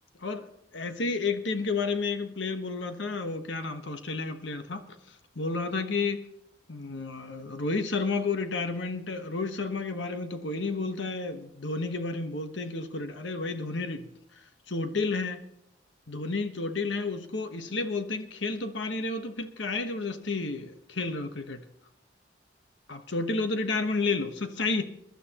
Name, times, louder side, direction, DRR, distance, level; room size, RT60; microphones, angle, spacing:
voice 1, 0.7-6.2 6.7-14.1 14.7-15.4 16.1-21.6 22.9-24.8, left 3 dB, 70° left, 1.3 m, -31 dB
22.5 x 12.0 x 3.0 m
head